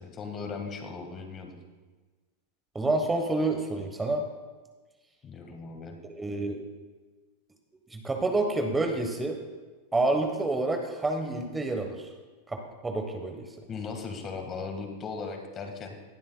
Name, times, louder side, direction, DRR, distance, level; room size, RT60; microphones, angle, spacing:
voice 1, 0.0-1.6 5.2-6.0 13.7-15.9, left 4 dB, 30° left, 4 dB, 1.7 m, -37 dB
voice 2, 2.7-4.3 6.0-6.6 7.9-9.4 9.9-12.1 12.5-12.6 12.8-13.4, right 2 dB, 15° right, 4 dB, 1.1 m, -28 dB
19.0 x 7.3 x 2.3 m, 1.3 s
hypercardioid pair, 100°, 0 cm